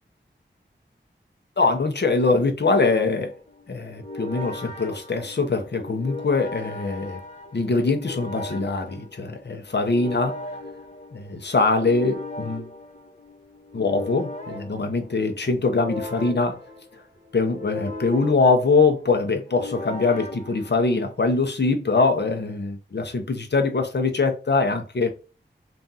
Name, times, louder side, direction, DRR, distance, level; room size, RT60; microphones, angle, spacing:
voice 1, 1.6-3.3 3.7-7.2 7.5-10.4 11.1-12.7 13.7-16.6 17.3-25.1, left 3 dB, 60° left, 0.8 m, -23 dB
sound 1, 2.9-21.3, left 2 dB, 40° left, 1.1 m, -38 dB
3.6 x 2.6 x 4.0 m
wide cardioid pair, 70°, 19 cm